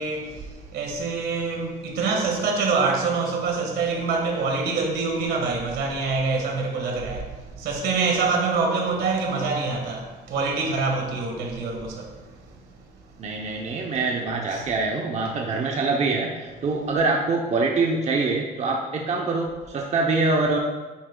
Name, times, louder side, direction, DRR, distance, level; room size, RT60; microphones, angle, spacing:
voice 1, 0.0-12.9 14.5-14.7, right 4 dB, 70° right, 1.8 m, -26 dB
voice 2, 13.2-20.6, right 3 dB, 40° right, 0.9 m, -24 dB
9.4 x 8.5 x 2.4 m
cardioid pair, 110°, 17 cm